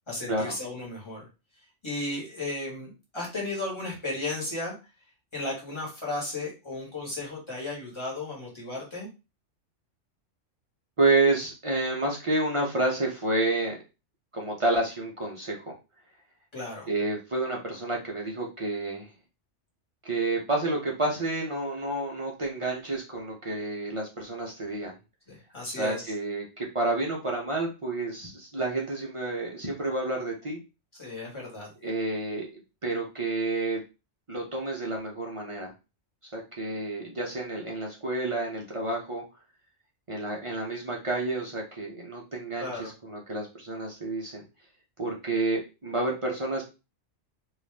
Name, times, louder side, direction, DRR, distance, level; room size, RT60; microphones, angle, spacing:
voice 1, 0.1-1.3 1.8-4.7 5.3-9.1 16.5-16.9 25.3-26.1 31.0-31.7 42.6-42.9, left 2 dB, 25° left, -3 dB, 1.2 m, -34 dB
voice 2, 11.0-13.8 14.3-15.7 16.9-19.1 20.0-24.9 25.7-30.6 31.8-32.5 32.8-33.8 34.3-35.7 36.3-39.2 40.1-44.4 45.0-46.6, right 2 dB, 40° right, -1 dB, 0.5 m, -29 dB
2.6 x 2.3 x 3.2 m, 0.29 s
omnidirectional pair, 1.2 m